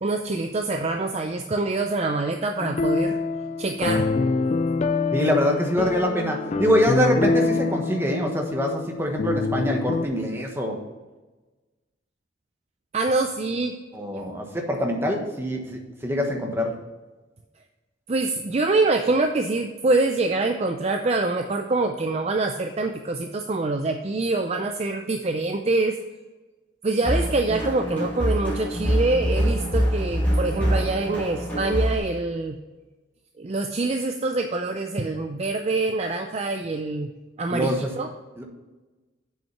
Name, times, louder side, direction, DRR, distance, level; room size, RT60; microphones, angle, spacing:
voice 1, 0.0-3.2 3.6-4.1 12.9-13.8 18.1-26.0 26.8-32.6 33.4-37.1 37.4-38.1, right 3 dB, 35° right, 5 dB, 0.4 m, -25 dB
sound 1, 2.6-10.0, left 3 dB, 35° left, 0.3 m, -25 dB
voice 2, 5.1-10.8 13.9-16.8 37.5-37.9 38.4-38.5, equal, 10° right, 1 dB, 1.2 m, -24 dB
sound 2, 27.0-32.0, equal, 10° left, 2.8 m, -24 dB
7.4 x 5.6 x 5.8 m, 1.2 s
head